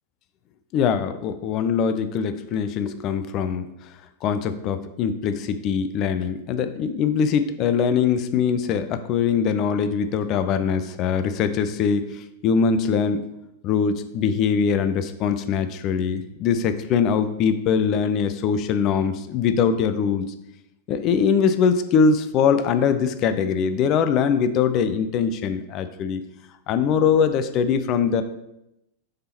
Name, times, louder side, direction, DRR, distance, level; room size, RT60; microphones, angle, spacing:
voice 1, 0.7-13.2 13.6-20.3 20.9-26.2 26.7-28.2, left 6 dB, 35° left, 10 dB, 0.4 m, -22 dB
6.6 x 3.7 x 4.3 m, 0.85 s
figure-of-eight pair, 90°, 0 cm